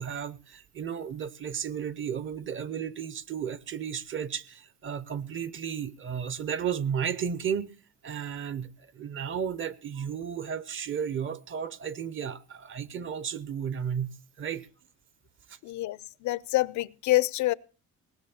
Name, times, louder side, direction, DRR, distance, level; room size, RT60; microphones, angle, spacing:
voice 1, 0.0-7.7 8.0-14.7 15.5-15.6, right 8 dB, 45° right, 0.8 m, -33 dB
voice 2, 15.6-17.5, left 18 dB, 75° left, 0.6 m, -27 dB
19.0 x 6.5 x 7.1 m
cardioid pair, 135°, 29 cm